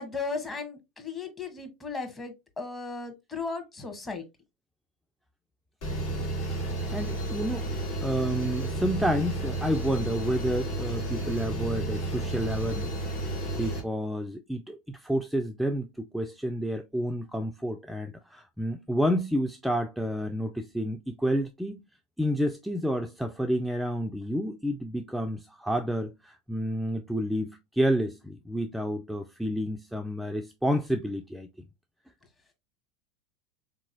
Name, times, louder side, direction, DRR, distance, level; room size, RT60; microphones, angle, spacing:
voice 1, 0.0-4.2, left 4 dB, 20° left, 1.1 m, -36 dB
sound 1, 5.8-13.8, right 1 dB, 65° left, 1.6 m, -32 dB
voice 2, 6.9-7.7 8.0-13.0 13.5-21.8 22.2-31.5, equal, ahead, 0.3 m, -30 dB
3.7 x 2.9 x 2.5 m
hypercardioid pair, 85°, 0 cm